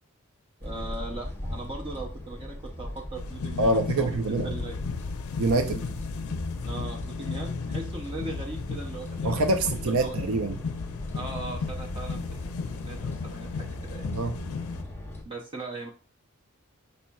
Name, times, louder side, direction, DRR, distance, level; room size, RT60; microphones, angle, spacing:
sound 1, 0.6-15.2, left 1 dB, 10° left, 0.8 m, -39 dB
voice 1, 0.6-4.1 4.4-4.8 6.7-10.2 11.1-12.5 12.8-14.1 15.2-15.9, right 3 dB, 25° right, 0.6 m, -39 dB
sound 2, 3.1-14.8, left 4 dB, 75° left, 0.4 m, -35 dB
voice 2, 3.6-4.5 5.4-5.8 9.2-10.6 14.1-14.3, right 2 dB, 70° right, 0.5 m, -25 dB
5.3 x 4.2 x 2.3 m
head